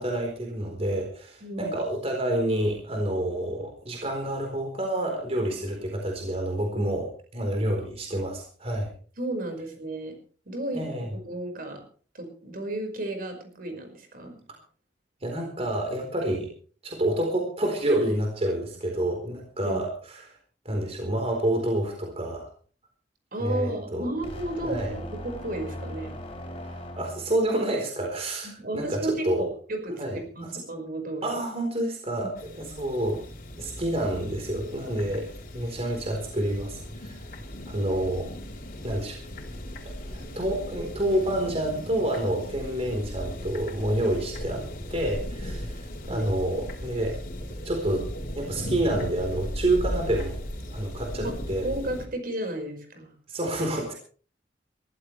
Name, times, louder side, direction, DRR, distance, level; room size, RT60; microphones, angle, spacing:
voice 1, 0.0-8.9 10.7-11.1 15.2-16.5 16.8-20.2 20.6-22.5 23.4-24.1 24.6-24.9 27.0-29.5 30.0-30.2 31.2-33.2 33.6-37.2 37.7-38.3 38.8-39.2 40.1-44.6 44.9-47.2 47.6-48.0 48.3-50.4 50.7-51.7 53.3-53.9, right 1 dB, 35° right, 1 dB, 4.1 m, -28 dB
voice 2, 1.4-1.8 9.2-10.1 10.5-11.8 12.1-14.3 19.6-19.8 23.3-26.2 28.4-31.4 46.1-46.3 51.2-51.3 51.6-53.1, right 1 dB, 55° right, 5 dB, 5.3 m, -33 dB
sound 1, 24.2-27.5, equal, 35° left, 5.6 m, -38 dB
sound 2, 32.4-52.1, left 1 dB, 55° left, 3.6 m, -37 dB
22.5 x 15.0 x 3.3 m, 0.42 s
head